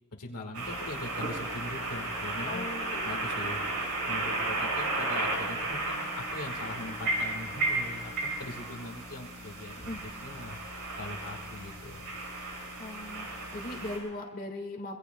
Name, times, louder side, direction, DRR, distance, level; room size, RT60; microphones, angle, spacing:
voice 1, 0.1-9.8 10.1-12.1, left 2 dB, 75° left, 2 dB, 1.7 m, -42 dB
sound 1, 0.5-14.0, right 2 dB, 80° right, 5.2 m, -34 dB
voice 2, 2.4-3.3 9.8-10.0 12.8-15.0, left 2 dB, 40° left, 0 dB, 1.8 m, -39 dB
Singing, 2.6-8.8, equal, 40° right, 4.5 m, -51 dB
26.0 x 21.5 x 2.3 m, 1.3 s
head